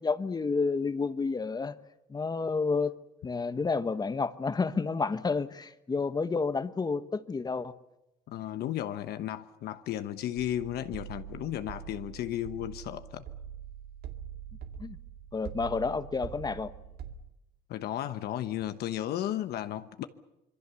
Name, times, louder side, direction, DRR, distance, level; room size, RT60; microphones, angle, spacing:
voice 1, 0.0-1.7 2.1-2.9 3.2-7.7 14.8-15.0 15.3-16.7, left 4 dB, 25° left, 1.2 m, -30 dB
voice 2, 8.3-13.2 17.7-20.1, left 12 dB, 70° left, 1.1 m, -34 dB
sound 1, 10.4-17.1, right 9 dB, 70° right, 2.2 m, -44 dB
26.5 x 22.5 x 7.0 m
cardioid pair, 110°, 17 cm